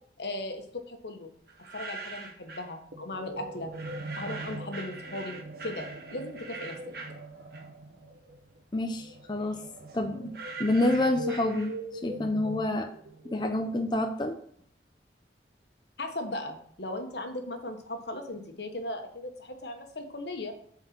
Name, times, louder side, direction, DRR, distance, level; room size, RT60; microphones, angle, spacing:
voice 1, 0.2-1.3 1.7-3.7 4.2-6.8 16.0-20.5, left 2 dB, 75° left, 5 dB, 1.3 m, -37 dB
sound 1, 1.5-2.7 3.7-7.9 8.3-12.0, right 3 dB, 60° right, 1.5 m, -43 dB
sound 2, 2.9-14.2, right 1 dB, 75° right, 1.3 m, -42 dB
voice 2, 8.7-9.6 9.9-11.7 12.0-12.9 13.2-14.4, left 1 dB, 25° left, 4 dB, 0.5 m, -28 dB
7.8 x 4.5 x 6.0 m, 0.65 s
head